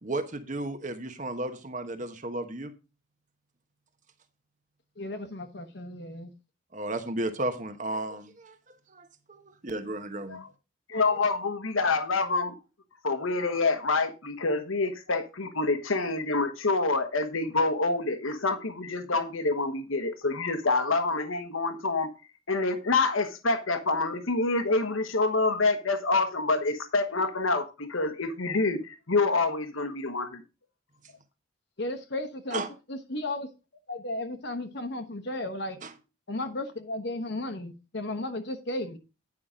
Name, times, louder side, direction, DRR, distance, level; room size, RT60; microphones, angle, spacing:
voice 1, 0.0-2.7 6.7-8.5 8.9-10.4 10.9-11.1 32.5-32.7 35.8-35.9, right 2 dB, 35° right, 1.1 m, -34 dB
voice 2, 5.0-6.3 31.8-32.6 32.9-33.5 33.9-35.8 36.3-39.0, left 2 dB, 55° left, 1.0 m, -34 dB
voice 3, 10.9-12.5 13.0-22.1 22.5-30.4, left 3 dB, 80° left, 1.2 m, -27 dB
9.8 x 5.7 x 5.0 m
head